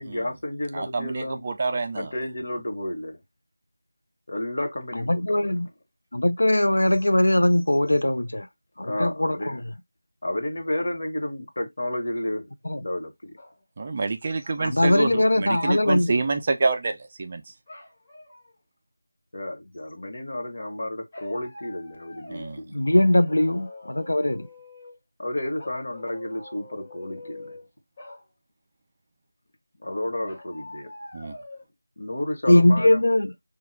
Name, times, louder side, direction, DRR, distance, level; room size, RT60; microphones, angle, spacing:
voice 1, 0.0-1.4 1.9-3.2 4.3-5.5 8.8-9.7 10.2-13.3 19.3-22.8 25.2-27.6 29.8-30.9 32.0-33.0, left 1 dB, 45° left, 1.1 m, -32 dB
voice 2, 0.7-2.1 13.8-17.4 22.3-22.6 31.1-31.4, right 3 dB, 25° right, 0.3 m, -27 dB
voice 3, 5.1-5.7 6.1-8.5 8.8-9.6 12.7-12.8 14.6-16.2 22.7-24.5 32.5-33.3, left 1 dB, 85° left, 0.5 m, -20 dB
sound 1, 13.4-13.6 14.9-15.9 17.7-18.6 21.1-22.6 22.9-25.0 25.6-27.7 28.0-28.3 30.3-31.6, left 2 dB, 25° left, 0.7 m, -45 dB
3.2 x 2.3 x 3.1 m
figure-of-eight pair, 175°, 0 cm